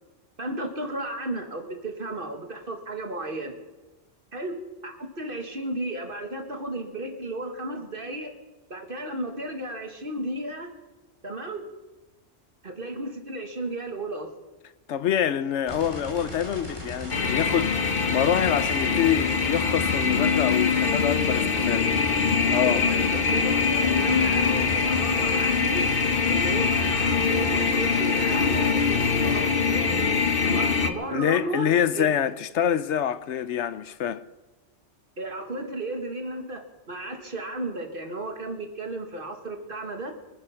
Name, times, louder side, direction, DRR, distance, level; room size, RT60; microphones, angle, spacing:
voice 1, 0.4-3.6 4.3-4.6 4.8-8.3 8.7-10.7 11.2-11.7 12.6-14.3 22.6-25.8 26.2-29.9 30.4-32.1 35.2-40.1, right 2 dB, 45° right, 2.0 m, -34 dB
voice 2, 14.9-17.7 18.1-21.9 22.5-22.9 31.1-34.2, left 9 dB, 75° left, 1.0 m, -26 dB
sound 1, 15.7-29.4, left 1 dB, 25° left, 2.8 m, -37 dB
sound 2, 17.1-30.9, left 5 dB, 50° left, 1.1 m, -23 dB
24.5 x 9.7 x 5.9 m
omnidirectional pair, 1.2 m